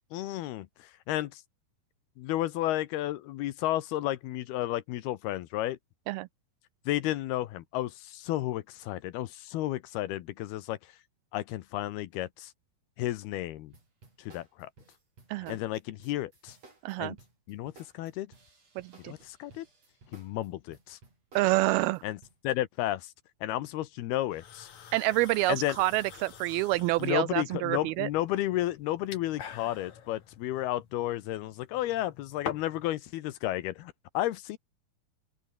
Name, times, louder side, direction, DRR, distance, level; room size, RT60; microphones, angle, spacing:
voice 1, 0.1-1.4 2.2-5.8 6.9-10.8 11.3-12.5 13.0-13.7 14.2-14.7 15.5-16.6 17.0-17.2 17.5-18.3 19.0-19.7 20.1-21.0 22.0-22.2 22.4-23.1 23.4-24.7 25.5-25.8 27.0-34.6, left 15 dB, 80° left, 3.0 m, -32 dB
sound 1, 13.7-22.4, right 3 dB, 40° right, 7.9 m, -57 dB
voice 2, 16.8-17.2 18.8-19.1 21.4-22.0 24.9-28.1, right 19 dB, 85° right, 2.4 m, -27 dB
sound 2, 24.3-32.9, left 8 dB, 50° left, 3.3 m, -46 dB
open air
omnidirectional pair, 4.5 m